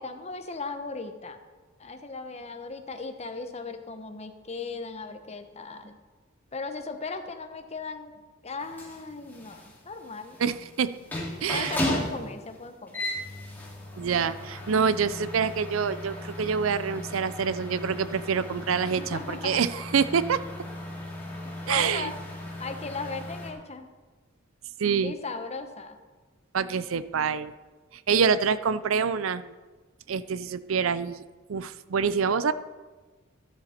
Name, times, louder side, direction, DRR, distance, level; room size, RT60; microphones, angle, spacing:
voice 1, 0.0-1.4 1.8-6.0 6.5-8.1 8.4-10.4 11.5-13.0 18.8-19.6 21.4-22.1 22.6-23.9 25.0-26.0, left 3 dB, 35° left, 7 dB, 1.0 m, -37 dB
sound 1, 8.6-23.5, left 1 dB, 10° left, 2.7 m, -36 dB
voice 2, 10.4-11.0 11.4-11.8 14.0-20.4 21.7-22.1 24.8-25.1 26.5-27.5 28.1-29.5 30.1-31.2 31.5-32.5, right 6 dB, 75° right, 15 dB, 0.5 m, -26 dB
13.5 x 10.5 x 4.4 m, 1.3 s
head